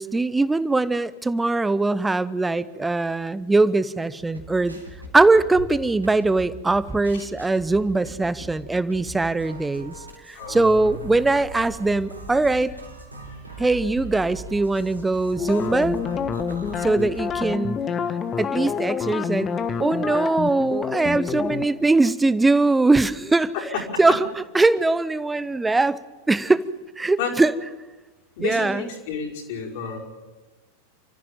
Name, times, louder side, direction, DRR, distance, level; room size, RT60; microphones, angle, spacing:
voice 1, 0.0-4.8 5.1-9.9 10.3-12.7 13.6-16.0 16.8-17.9 18.4-23.5 24.0-24.2 24.5-26.0 26.3-26.6 27.0-27.5 28.4-28.8, right 3 dB, 10° right, 17 dB, 0.8 m, -21 dB
sound 1, 4.2-17.4, right 1 dB, 85° right, 3.7 m, -40 dB
voice 2, 10.3-11.0 13.2-13.7 23.5-23.7 27.2-27.3 28.4-30.0, left 6 dB, 50° left, -1 dB, 5.3 m, -31 dB
sound 2, 15.4-21.7, left 6 dB, 25° left, 1.4 m, -27 dB
29.5 x 14.5 x 7.4 m, 1.2 s
figure-of-eight pair, 90°, 0 cm